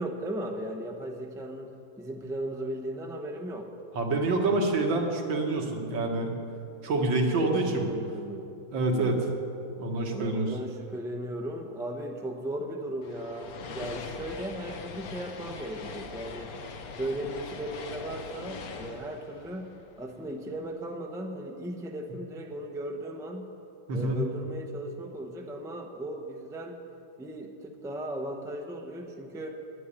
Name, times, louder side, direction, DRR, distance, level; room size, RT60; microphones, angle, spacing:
voice 1, 0.0-3.7 7.1-8.5 8.9-9.2 10.1-16.5 17.0-19.7 20.0-23.5 23.9-26.8 27.2-29.6, right 1 dB, 5° right, 2 dB, 0.5 m, -37 dB
voice 2, 3.9-6.4 6.8-7.9 8.7-9.2 9.8-10.5 23.9-24.2, right 2 dB, 90° right, 1 dB, 2.3 m, -27 dB
sound 1, 13.0-20.4, left 4 dB, 55° left, 1.3 m, -42 dB
10.5 x 9.4 x 9.9 m, 2.6 s
omnidirectional pair, 2.0 m